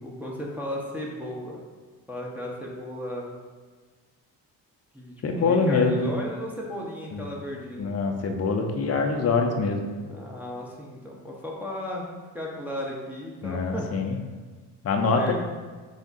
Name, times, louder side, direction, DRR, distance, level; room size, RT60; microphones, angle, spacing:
voice 1, 0.0-1.6 2.1-3.4 4.9-8.0 10.0-12.1 12.3-13.9 15.1-15.3, left 1 dB, 5° right, -4 dB, 0.9 m, -35 dB
voice 2, 5.2-6.1 7.1-7.2 7.8-9.8 13.4-14.1 14.8-15.3, left 4 dB, 30° left, 3 dB, 0.7 m, -24 dB
3.6 x 3.5 x 4.1 m, 1.4 s
supercardioid pair, 60°, 48 cm